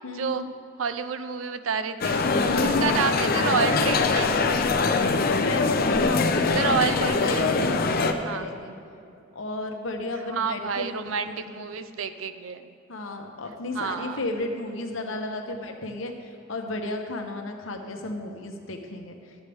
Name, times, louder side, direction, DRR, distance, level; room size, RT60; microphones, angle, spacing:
voice 1, 0.0-0.5 2.5-2.9 5.3-8.7 9.3-11.5 12.9-19.3, left 2 dB, 75° left, 4 dB, 1.0 m, -33 dB
voice 2, 0.8-4.3 6.5-7.5 8.3-8.5 10.3-12.7 13.7-14.2, right 6 dB, 80° right, 10 dB, 0.5 m, -29 dB
sound 1, 2.0-8.1, left 4 dB, 45° left, 0.5 m, -23 dB
12.5 x 8.1 x 3.5 m, 2.6 s
head